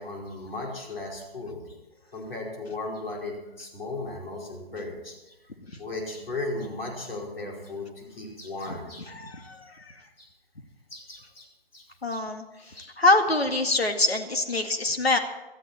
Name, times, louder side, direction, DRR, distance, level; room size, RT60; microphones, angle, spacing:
voice 1, 0.0-1.7 2.1-5.3 5.8-9.1 9.4-9.6 10.2-10.3 10.9-11.5 11.7-12.2 12.7-12.9 14.5-14.6, left 2 dB, 65° left, -1 dB, 5.1 m, -36 dB
voice 2, 9.1-9.6 12.0-12.4 13.0-15.2, left 2 dB, 85° left, 6 dB, 2.0 m, -24 dB
17.5 x 13.5 x 4.4 m, 1.0 s
figure-of-eight pair, 150°, 30 cm